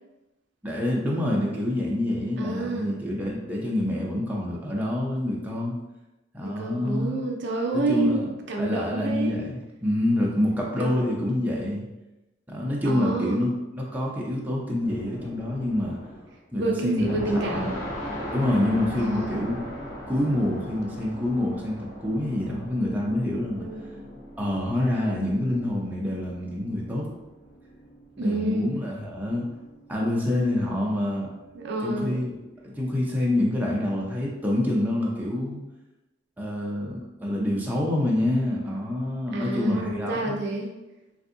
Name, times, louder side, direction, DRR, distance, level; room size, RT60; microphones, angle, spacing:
voice 1, 0.6-5.8 6.3-7.2 7.7-8.2 8.6-11.9 12.5-16.0 16.5-17.7 18.3-19.6 20.1-23.6 24.4-27.1 28.2-29.5 29.9-31.3 31.8-32.3 32.6-35.6 36.4-40.4, left 1 dB, 10° right, -4 dB, 0.5 m, -27 dB
voice 2, 2.4-3.0 6.4-9.4 10.8-11.1 12.8-13.4 16.5-17.8 18.9-19.4 23.5-24.0 28.2-28.7 31.5-32.2 39.3-40.7, right 2 dB, 65° right, 1 dB, 0.5 m, -28 dB
sound 1, 14.8-16.4 16.8-33.2, equal, 50° left, 0.9 m, -40 dB
3.4 x 2.6 x 2.6 m, 0.99 s
head